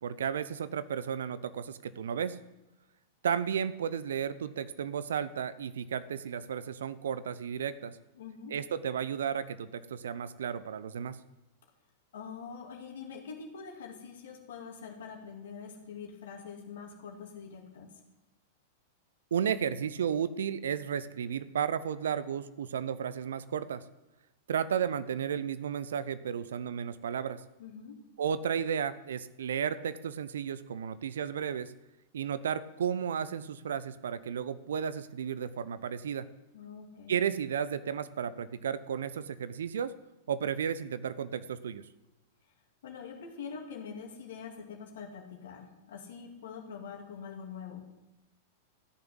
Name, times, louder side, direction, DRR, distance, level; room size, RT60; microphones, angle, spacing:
voice 1, 0.0-2.4 3.2-8.0 8.5-11.2 19.3-23.8 24.5-27.4 28.2-31.7 32.1-36.3 37.1-39.9 40.3-41.8, right 8 dB, 65° right, 15 dB, 0.7 m, -33 dB
voice 2, 8.2-8.6 12.1-17.9 27.6-28.0 36.5-37.1 42.8-47.9, left 6 dB, 60° left, 1 dB, 2.5 m, -44 dB
14.0 x 7.0 x 9.7 m, 0.97 s
figure-of-eight pair, 95°, 0 cm